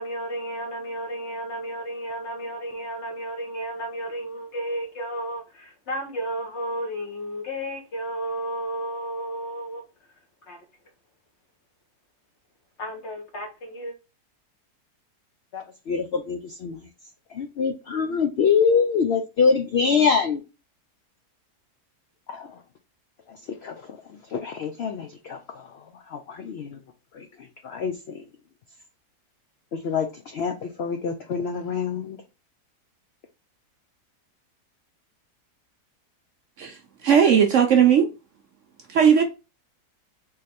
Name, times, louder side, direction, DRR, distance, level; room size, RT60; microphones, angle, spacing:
voice 1, 0.0-9.8 10.5-10.6 12.8-13.9, right 1 dB, 50° left, 1.2 m, -32 dB
voice 2, 15.5-16.8 17.3-20.4 22.3-22.6 23.3-23.8 24.3-25.7 26.1-26.8 27.1-27.3 27.6-28.2 29.7-32.2, left 6 dB, 70° left, 0.6 m, -25 dB
voice 3, 36.6-38.1 38.9-39.2, right 8 dB, 65° right, 0.8 m, -18 dB
3.8 x 3.2 x 4.1 m
omnidirectional pair, 1.7 m